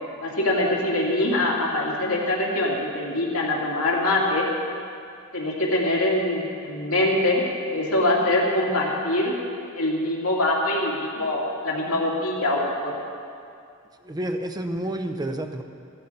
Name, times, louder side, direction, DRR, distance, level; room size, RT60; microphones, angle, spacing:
voice 1, 0.2-4.5 5.3-7.4 7.7-9.4 9.7-12.9, left 1 dB, 70° left, -3 dB, 2.5 m, -23 dB
voice 2, 14.0-15.6, right 1 dB, 20° right, 6 dB, 0.6 m, -29 dB
14.5 x 14.5 x 4.2 m, 2.4 s
head